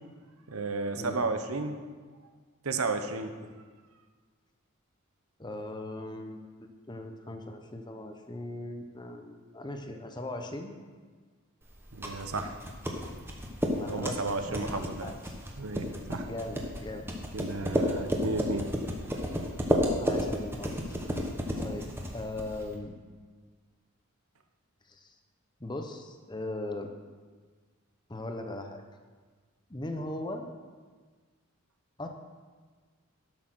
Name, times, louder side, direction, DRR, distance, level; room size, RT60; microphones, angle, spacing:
voice 1, 0.5-1.8 2.6-3.4 11.9-12.6 13.1-13.2 13.9-15.1 15.6-16.3 17.3-18.7, right 3 dB, 80° right, 7 dB, 1.0 m, -33 dB
voice 2, 5.4-6.5 6.9-10.7 13.7-15.4 16.2-17.1 20.0-21.0 21.6-23.0 24.9-25.1 25.6-26.9 28.1-28.8 29.7-30.5 32.0-32.1, left 2 dB, 20° left, 5 dB, 0.8 m, -39 dB
sound 1, 11.7-22.7, equal, 10° right, 1.1 m, -32 dB
12.0 x 6.4 x 6.2 m, 1.5 s
head